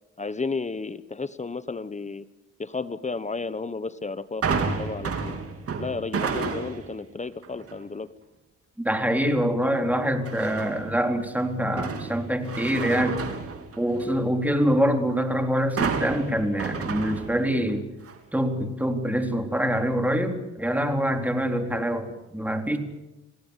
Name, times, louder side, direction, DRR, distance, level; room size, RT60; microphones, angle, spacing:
voice 1, 0.2-2.2 2.6-5.4 5.8-8.1, left 4 dB, 25° left, 14 dB, 1.3 m, -33 dB
sound 1, 4.4-6.9 7.4-7.8 10.2-10.9 11.4-14.2 15.8-17.7 18.0-18.2, right 5 dB, 50° right, 3.8 m, -31 dB
voice 2, 8.8-13.2 13.8-17.9 18.3-22.1 22.3-22.8, equal, 5° right, 5 dB, 3.8 m, -25 dB
28.0 x 18.5 x 8.4 m, 0.96 s
cardioid pair, 90°, 30 cm